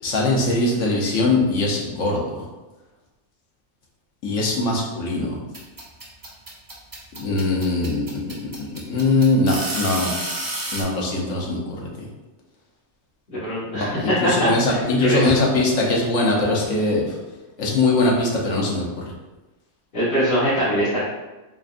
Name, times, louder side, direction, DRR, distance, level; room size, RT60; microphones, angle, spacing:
voice 1, 0.0-2.5 4.2-5.4 7.1-10.1 10.7-11.9 13.7-17.2 17.6-19.1, left 2 dB, 80° left, -3 dB, 1.2 m, -21 dB
sound 1, 5.5-10.8, right 1 dB, 25° right, 0.5 m, -30 dB
voice 2, 13.3-15.3 19.9-21.0, equal, 40° left, -13 dB, 1.7 m, -22 dB
3.9 x 3.4 x 2.4 m, 1.1 s
omnidirectional pair, 1.3 m